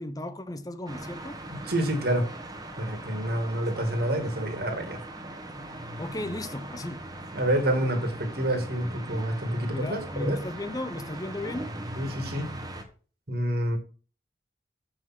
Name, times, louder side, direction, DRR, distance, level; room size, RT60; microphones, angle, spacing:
voice 1, 0.0-1.4 6.0-7.0 9.7-11.7, left 1 dB, 20° left, 0.7 m, -35 dB
sound 1, 0.9-12.8, right 1 dB, 20° right, 1.4 m, -40 dB
voice 2, 1.5-2.3 2.8-5.0 7.3-10.4 12.0-12.5 13.3-13.8, right 1 dB, 60° right, 2.2 m, -28 dB
7.3 x 6.4 x 5.8 m
head